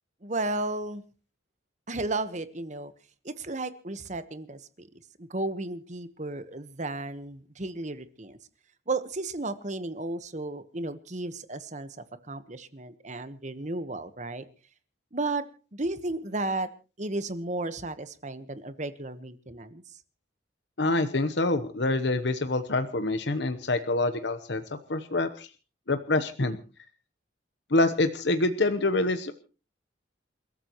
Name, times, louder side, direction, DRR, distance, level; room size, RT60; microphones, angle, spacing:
voice 1, 0.2-1.0 1.9-2.9 3.2-4.9 5.2-8.4 8.9-11.9 12.3-14.4 15.1-15.4 15.7-16.7 17.0-19.8, right 2 dB, 35° right, 12 dB, 1.2 m, -33 dB
voice 2, 20.8-24.6 24.9-25.5 25.9-26.6 27.7-29.4, left 2 dB, 60° left, 9 dB, 1.0 m, -26 dB
28.5 x 13.5 x 3.1 m, 0.34 s
head